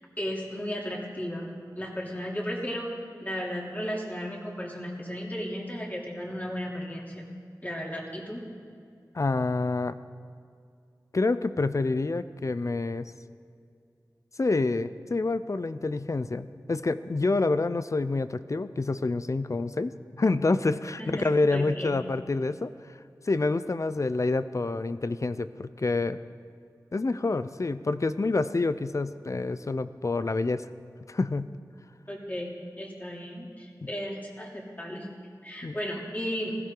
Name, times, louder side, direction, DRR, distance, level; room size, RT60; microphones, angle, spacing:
voice 1, 0.2-2.9 3.2-7.2 7.6-8.4 21.0-21.9 32.1-35.1 35.4-36.6, equal, 25° left, -3 dB, 3.1 m, -35 dB
voice 2, 9.1-10.0 11.1-13.1 14.4-22.7 23.3-26.2 26.9-30.7 31.1-31.5 35.6-35.8, left 3 dB, 45° left, 13 dB, 0.5 m, -27 dB
19.5 x 15.5 x 3.9 m, 2.4 s
wide cardioid pair, 60°, 7 cm